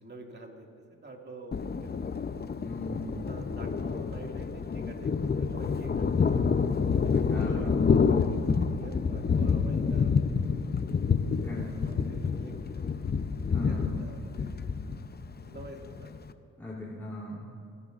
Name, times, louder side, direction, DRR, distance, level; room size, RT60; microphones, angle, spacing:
voice 1, 0.0-1.9 3.2-6.6 7.3-10.8 11.4-13.1 13.6-14.6 15.5-16.1, right 2 dB, 30° right, 1 dB, 2.2 m, -47 dB
Thunder, 1.5-16.3, left 5 dB, 30° left, 0.7 m, -28 dB
voice 2, 2.6-3.2 7.2-7.8 11.4-11.8 13.5-13.9 16.6-17.4, left 2 dB, 5° left, -7 dB, 3.2 m, -39 dB
27.5 x 11.0 x 2.6 m, 2.7 s
supercardioid pair, 60°, 33 cm